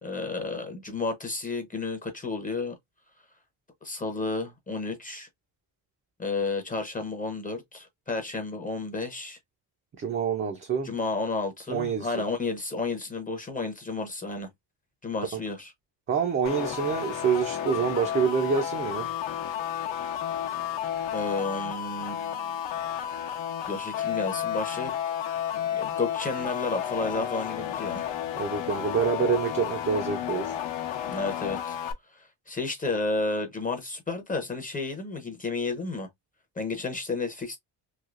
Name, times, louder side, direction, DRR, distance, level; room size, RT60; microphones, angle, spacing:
voice 1, 0.0-2.7 3.8-5.3 6.2-9.4 10.8-14.5 15.0-15.7 21.1-22.6 23.7-24.9 25.7-28.0 31.1-31.8 32.1-36.1 36.6-37.6, left 3 dB, 20° left, 0.6 m, -32 dB
voice 2, 10.0-10.9 11.7-12.2 15.3-15.4 16.1-19.1 28.3-30.6, right 6 dB, 30° right, 0.4 m, -27 dB
sound 1, 16.4-31.9, left 10 dB, 75° left, 0.8 m, -32 dB
3.2 x 2.7 x 2.4 m
cardioid pair, 165°, 44 cm